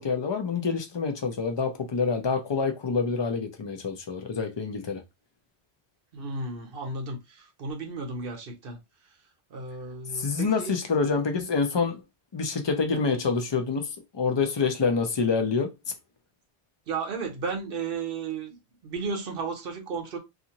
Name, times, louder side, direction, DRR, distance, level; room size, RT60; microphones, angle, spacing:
voice 1, 0.0-5.0 10.1-12.0 12.3-15.7, left 5 dB, 40° left, 0.4 m, -27 dB
voice 2, 6.1-8.8 9.5-10.7 16.9-18.6 18.8-20.2, right 4 dB, 60° right, 0.9 m, -34 dB
2.6 x 2.5 x 2.8 m
omnidirectional pair, 1.1 m